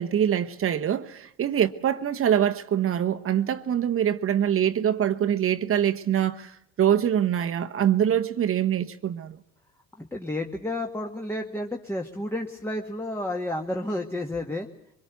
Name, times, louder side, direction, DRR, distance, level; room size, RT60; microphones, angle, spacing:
voice 1, 0.0-9.4, right 9 dB, 45° right, 1.2 m, -24 dB
voice 2, 10.0-14.7, left 1 dB, 10° left, 1.7 m, -31 dB
23.5 x 21.5 x 8.3 m
supercardioid pair, 90°, 30 cm